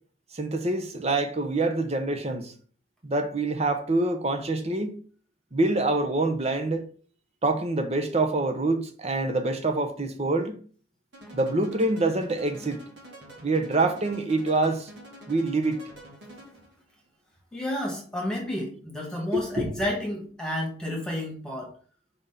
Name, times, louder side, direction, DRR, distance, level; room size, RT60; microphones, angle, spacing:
voice 1, 0.3-2.5 3.0-5.0 5.5-6.9 7.4-10.6 11.3-12.8 13.4-14.9 15.3-15.8 19.3-19.9, right 2 dB, 35° right, 1.0 m, -26 dB
sound 1, 11.1-16.8, right 1 dB, 80° right, 2.9 m, -47 dB
voice 2, 17.5-21.7, left 1 dB, 5° left, 1.8 m, -31 dB
5.2 x 4.5 x 5.8 m
head